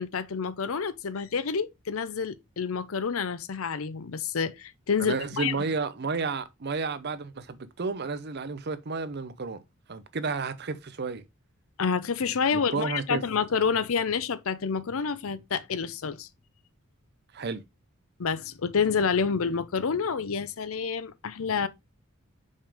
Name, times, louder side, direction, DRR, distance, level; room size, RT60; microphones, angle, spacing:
voice 1, 0.0-5.5 11.8-16.3 18.2-21.7, left 6 dB, 70° left, 0.6 m, -28 dB
voice 2, 5.0-9.6 9.9-11.2 12.5-13.2 17.3-17.6, right 4 dB, 50° right, 0.7 m, -32 dB
5.4 x 5.2 x 3.5 m
head